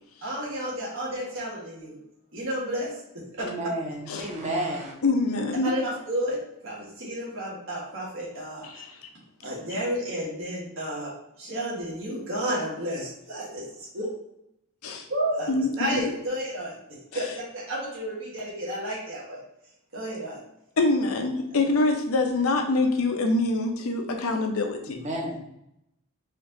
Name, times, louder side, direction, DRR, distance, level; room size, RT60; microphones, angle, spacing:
voice 1, 0.2-2.0 2.3-3.5 5.6-8.7 9.4-11.1 11.4-13.6 13.9-14.1 15.1-16.7 17.1-19.4 19.9-20.4, equal, 70° right, -4 dB, 1.5 m, -31 dB
voice 2, 3.4-4.9 24.9-25.4, right 1 dB, 35° right, -1 dB, 0.8 m, -31 dB
voice 3, 5.0-5.7 8.6-9.1 14.8-15.0 15.5-16.1 20.8-25.1, left 2 dB, 85° left, 5 dB, 0.6 m, -25 dB
4.4 x 2.9 x 2.6 m, 0.81 s
head